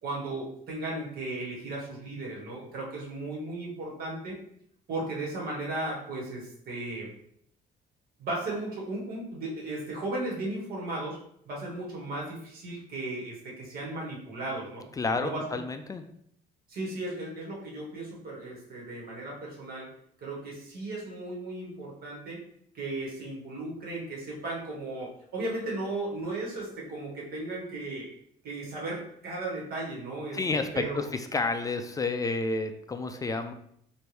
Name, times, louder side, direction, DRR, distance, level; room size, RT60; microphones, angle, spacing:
voice 1, 0.0-4.3 4.9-7.1 8.2-11.2 11.4-14.8 15.2-15.4 16.7-19.9 20.2-22.4 22.7-28.1 28.4-31.1, right 2 dB, 65° right, -3 dB, 1.6 m, -36 dB
voice 2, 15.0-16.0 30.3-33.5, left 3 dB, 20° left, 7 dB, 0.3 m, -30 dB
4.4 x 2.6 x 3.3 m, 0.69 s
cardioid pair, 110°, 17 cm